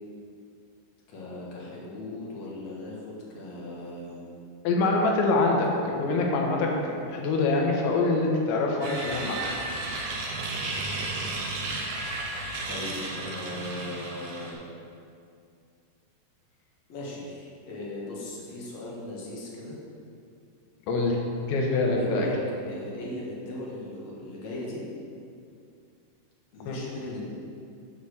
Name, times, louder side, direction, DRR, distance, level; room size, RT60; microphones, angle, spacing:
voice 1, 1.1-4.3 12.7-14.6 16.9-19.8 21.9-24.8 26.5-27.3, left 1 dB, 60° left, -5 dB, 2.0 m, -38 dB
voice 2, 4.6-9.4 20.9-21.2 21.5-22.3 26.7-26.8, left 3 dB, 90° left, 0 dB, 3.4 m, -25 dB
sound 1, 8.8-14.5, right 2 dB, 80° right, 1.8 m, -33 dB
10.5 x 4.2 x 6.5 m, 2.4 s
omnidirectional pair, 5.1 m